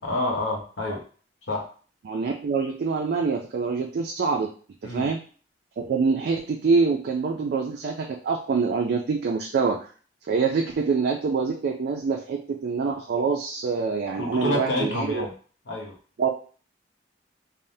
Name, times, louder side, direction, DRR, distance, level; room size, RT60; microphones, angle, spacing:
voice 1, 0.0-1.0 1.5-1.7 4.8-5.1 14.2-15.3 15.7-16.0, left 2 dB, 70° left, -1 dB, 0.8 m, -28 dB
voice 2, 2.1-4.5 4.8-5.2 5.8-9.9 10.3-15.3 16.2-16.3, right 4 dB, 60° right, 1 dB, 0.3 m, -25 dB
3.3 x 2.1 x 2.6 m, 0.41 s
head